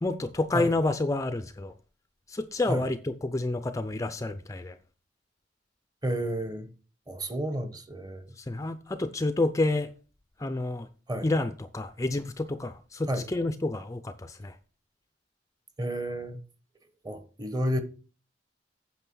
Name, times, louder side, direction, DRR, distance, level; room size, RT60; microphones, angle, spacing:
voice 1, 0.0-1.7 2.3-4.8 8.4-9.9 10.4-10.9 11.2-14.5, left 2 dB, 15° left, 0.5 m, -29 dB
voice 2, 6.0-6.7 7.1-8.3 11.1-11.3 13.1-13.3 15.8-16.4 17.0-17.8, equal, 20° right, 1.1 m, -31 dB
9.1 x 5.9 x 6.1 m
head